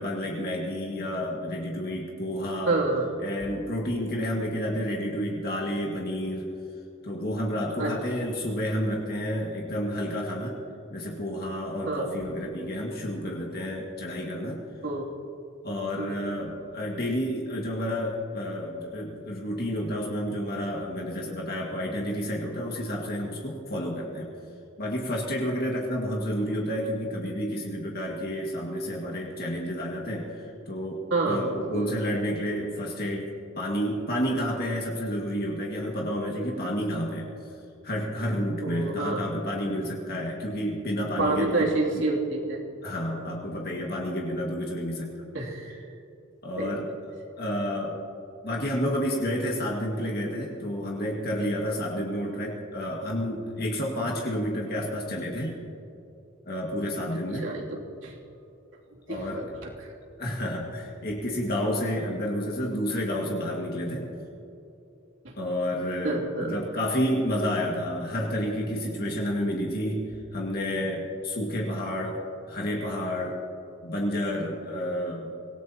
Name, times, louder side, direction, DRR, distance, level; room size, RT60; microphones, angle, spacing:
voice 1, 0.0-2.8 3.2-6.5 7.0-10.6 10.9-14.6 15.6-24.3 24.8-33.3 33.6-37.6 37.8-41.7 41.9-42.0 42.8-45.1 46.4-46.9 47.4-48.0 48.4-55.6 56.5-57.5 59.1-59.4 60.2-64.1 65.4-70.1 70.3-72.2 72.5-73.4 73.8-75.3, equal, 50° left, -2 dB, 1.9 m, -30 dB
voice 2, 2.7-3.1 7.8-7.9 11.9-12.2 14.8-15.1 16.0-16.4 31.1-32.0 38.6-39.2 41.2-42.6 45.3-45.8 46.6-46.7 57.4-57.6 58.0-58.1 59.1-59.5 59.8-59.9 65.2-65.3 66.0-66.6, right 2 dB, 75° right, -2 dB, 2.8 m, -28 dB
25.5 x 17.5 x 2.9 m, 2.8 s
head